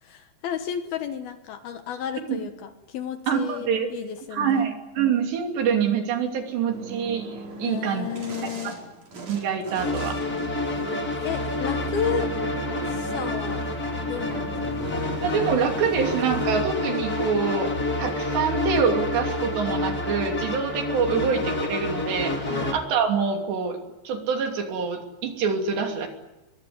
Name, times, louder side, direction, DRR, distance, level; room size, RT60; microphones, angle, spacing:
voice 1, 0.0-4.7 7.6-8.8 11.2-12.4 12.9-13.6 14.0-14.6 21.1-21.3 22.5-22.8, left 8 dB, 65° left, 8 dB, 2.8 m, -33 dB
voice 2, 3.3-3.9 4.3-7.2 7.6-8.1 9.3-10.2 15.2-17.7 18.0-23.8 24.0-26.1, right 6 dB, 70° right, 4 dB, 4.9 m, -25 dB
sound 1, 6.7-16.5, right 3 dB, 40° right, 5.7 m, -39 dB
sound 2, 9.8-22.7, left 2 dB, 25° left, 3.0 m, -28 dB
24.0 x 23.0 x 9.6 m, 1.0 s
omnidirectional pair, 5.3 m